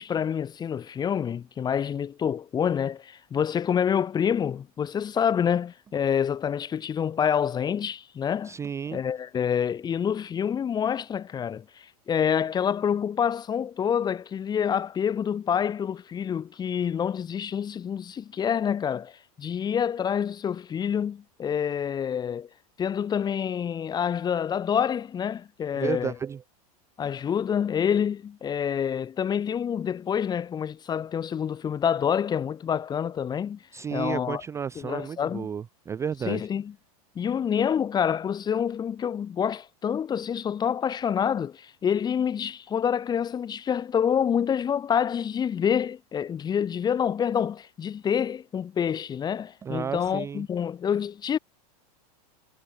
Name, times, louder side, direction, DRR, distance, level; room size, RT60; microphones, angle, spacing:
voice 1, 0.0-8.5 8.9-22.5 22.8-26.1 27.0-33.6 33.9-34.4 34.8-35.5 36.2-36.7 37.1-51.4, left 8 dB, 20° left, 1.0 m, -27 dB
voice 2, 8.4-9.0 25.7-26.4 33.7-36.4 49.6-50.5, right 7 dB, 15° right, 0.4 m, -32 dB
supercardioid pair, 130°, 20 cm